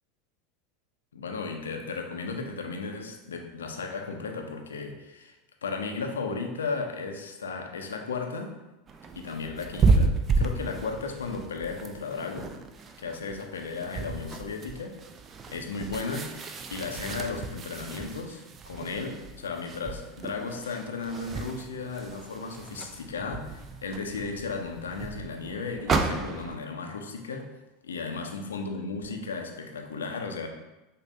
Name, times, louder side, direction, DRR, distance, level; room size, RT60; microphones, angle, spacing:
voice 1, 1.1-5.3 5.6-8.6 9.2-12.5 13.0-15.0 15.5-16.4 16.7-27.5 27.8-30.5, left 4 dB, 80° left, 4 dB, 0.4 m, -35 dB
sound 1, 8.9-26.6, right 3 dB, 35° right, 0.3 m, -32 dB
5.1 x 2.0 x 2.5 m, 1.0 s
hypercardioid pair, 85°, 0 cm